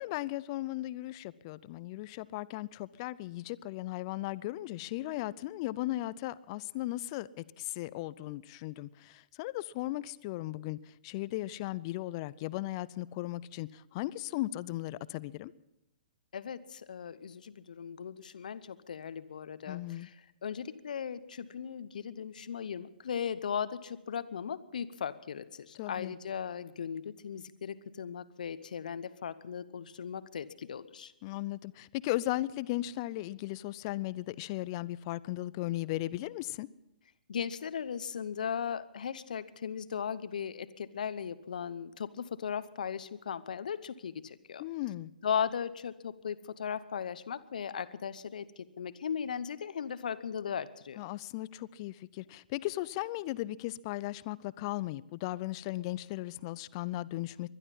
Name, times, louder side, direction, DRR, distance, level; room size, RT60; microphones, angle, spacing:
voice 1, 0.0-10.8 11.0-15.5 19.7-20.1 25.8-26.1 31.2-36.7 44.6-45.1 51.0-57.5, left 17 dB, 35° left, 19 dB, 0.5 m, -36 dB
voice 2, 16.3-20.1 20.4-31.1 37.3-44.6 45.2-51.0, left 7 dB, 65° left, 14 dB, 0.9 m, -37 dB
20.5 x 12.0 x 5.6 m, 0.87 s
figure-of-eight pair, 125°, 5 cm